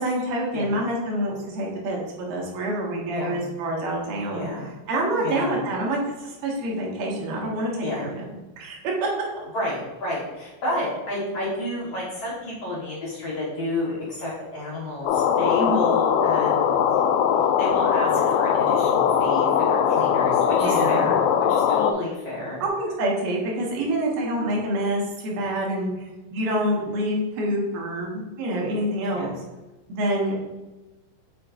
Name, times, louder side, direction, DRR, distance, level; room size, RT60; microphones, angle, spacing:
voice 1, 0.0-4.4 4.9-8.2 8.6-9.3 15.6-15.8 20.6-21.1 22.6-29.3 29.9-30.4, right 1 dB, 70° right, -2 dB, 2.8 m, -27 dB
voice 2, 3.1-3.5 4.3-5.6 7.8-8.1 9.5-16.8 17.6-22.6 29.1-29.3, left 1 dB, 60° left, -6 dB, 1.6 m, -31 dB
sound 1, 15.1-21.9, left 8 dB, 85° left, 2.2 m, -20 dB
7.4 x 5.0 x 2.5 m, 1.1 s
omnidirectional pair, 4.8 m